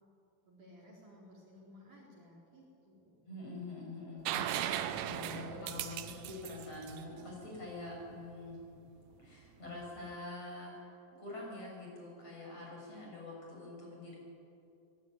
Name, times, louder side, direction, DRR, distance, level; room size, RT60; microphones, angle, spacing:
voice 1, 0.5-3.3, left 1 dB, 45° right, -4 dB, 5.2 m, -57 dB
voice 2, 3.3-4.4 5.0-8.6 9.2-14.2, left 2 dB, 30° left, -2 dB, 8.3 m, -45 dB
sound 1, 4.3-8.0 9.8-9.9, right 11 dB, 85° right, 3.4 m, -38 dB
24.0 x 20.5 x 9.6 m, 2.7 s
omnidirectional pair, 5.4 m